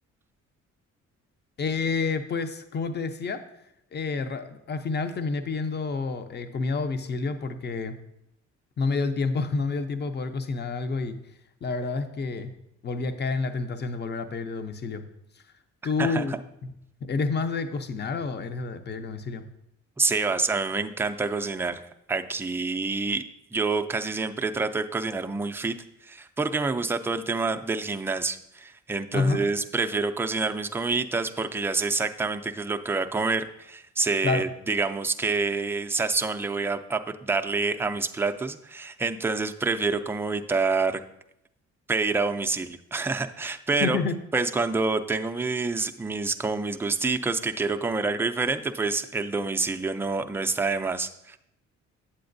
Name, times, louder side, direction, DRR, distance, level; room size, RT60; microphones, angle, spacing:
voice 1, 1.6-3.4 3.9-8.0 8.8-11.2 11.6-12.5 12.8-15.1 15.8-16.4 16.6-16.7 17.0-19.5 29.1-29.4 34.2-34.5 43.8-44.2, left 4 dB, 35° left, 9 dB, 0.6 m, -29 dB
voice 2, 20.0-21.8 22.1-23.2 23.5-25.7 26.0-41.0 41.9-44.0 44.3-51.4, right 3 dB, 10° right, 7 dB, 0.4 m, -27 dB
8.7 x 7.6 x 2.6 m, 0.81 s
cardioid pair, 90°, 30 cm